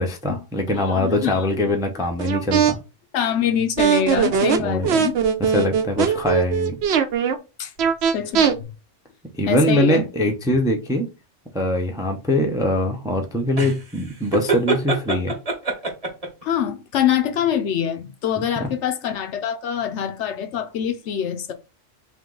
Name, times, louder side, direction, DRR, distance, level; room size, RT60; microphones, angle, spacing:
voice 1, 0.0-2.8 4.6-4.9 5.4-6.8 9.4-11.1 11.5-15.3 18.4-18.7, left 1 dB, 5° right, 0.4 m, -22 dB
voice 2, 0.7-1.5 3.1-5.2 7.6-7.7 8.1-8.5 9.5-10.1 16.4-21.5, left 9 dB, 70° left, 0.9 m, -24 dB
sound 1, 2.2-2.7 3.8-7.4 7.8-8.5, right 7 dB, 65° right, 0.8 m, -19 dB
sound 2, 13.6-16.4, right 3 dB, 30° right, 1.0 m, -24 dB
3.5 x 2.9 x 3.7 m
omnidirectional pair, 1.3 m